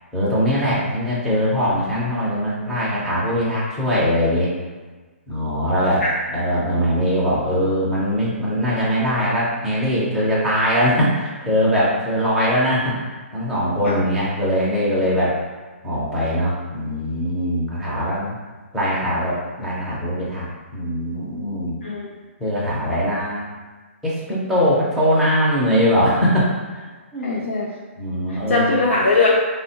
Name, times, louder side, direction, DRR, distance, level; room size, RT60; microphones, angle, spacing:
voice 1, 0.1-4.5 5.3-6.0 6.3-13.0 13.3-15.4 15.8-18.4 18.7-21.8 22.4-23.4 24.0-26.8 27.1-27.5 28.0-28.7, equal, ahead, -9 dB, 0.4 m, -21 dB
voice 2, 21.8-22.1 27.2-27.7 28.3-29.3, left 3 dB, 70° left, -5 dB, 0.5 m, -20 dB
3.5 x 2.1 x 2.7 m, 1.4 s
hypercardioid pair, 170°, 7 cm